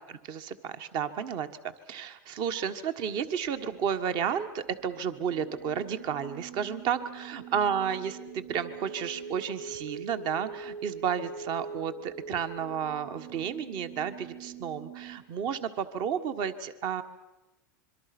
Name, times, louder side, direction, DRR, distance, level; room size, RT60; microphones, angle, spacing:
voice 1, 0.1-17.0, right 8 dB, 45° right, 11 dB, 1.5 m, -32 dB
sound 1, 3.4-15.2, right 5 dB, 90° right, 4.5 m, -44 dB
26.0 x 23.5 x 6.1 m, 1.0 s
supercardioid pair, 130°, 10 cm